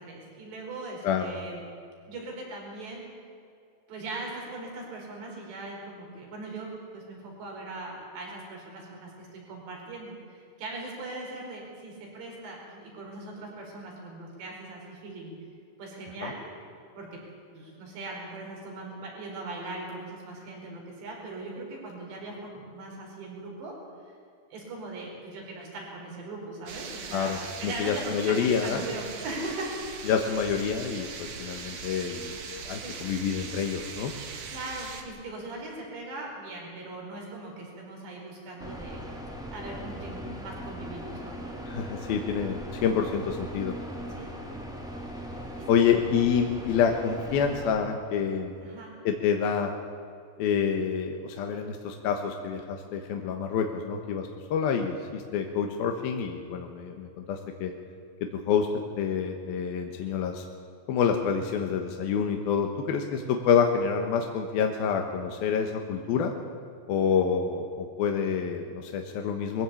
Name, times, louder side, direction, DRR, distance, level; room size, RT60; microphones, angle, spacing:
voice 1, 0.0-1.5 2.1-3.0 3.9-15.3 15.8-16.4 17.0-17.1 17.5-23.7 24.5-29.7 32.8-33.0 34.5-41.4 44.1-44.3 45.1-45.7 48.6-48.9 63.2-63.3, right 2 dB, 70° right, -1 dB, 7.1 m, -40 dB
sound 1, 26.7-35.0, right 5 dB, 50° right, 2.2 m, -40 dB
voice 2, 27.1-28.9 30.1-34.1 41.7-43.8 45.7-48.5 49.0-49.7 50.4-57.7 58.2-58.7 59.0-60.5 60.9-66.3 66.9-69.6, left 7 dB, 70° left, 4 dB, 2.7 m, -27 dB
sound 2, 38.6-47.7, equal, ahead, 1.3 m, -39 dB
22.0 x 15.5 x 8.5 m, 2.4 s
omnidirectional pair, 5.2 m